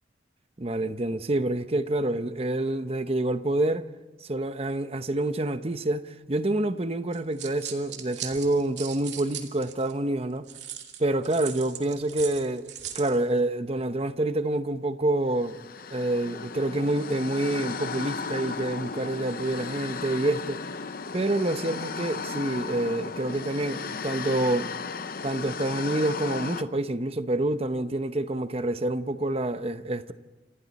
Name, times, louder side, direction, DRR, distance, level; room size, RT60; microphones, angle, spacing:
voice 1, 0.6-3.8 4.2-10.5 11.0-15.6 15.9-20.6 21.1-24.7 25.2-30.1, right 1 dB, 30° right, 0.8 m, -27 dB
sound 1, 7.1-9.9 10.5-13.2, right 10 dB, 65° right, 2.6 m, -39 dB
sound 2, 15.4-26.6, left 4 dB, 50° left, 0.7 m, -35 dB
28.5 x 26.0 x 4.2 m
head